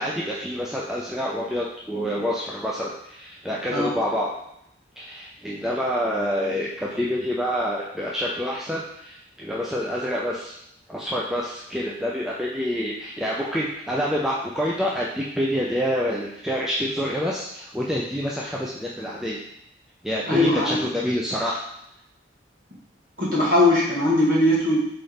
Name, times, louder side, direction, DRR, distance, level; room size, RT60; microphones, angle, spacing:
voice 1, 0.0-4.3 5.0-10.6 10.9-19.4 20.0-21.6, equal, ahead, -5 dB, 0.4 m, -27 dB
voice 2, 20.3-20.8 23.2-24.9, left 1 dB, 50° right, -7 dB, 1.8 m, -20 dB
4.0 x 3.3 x 3.9 m, 0.76 s
head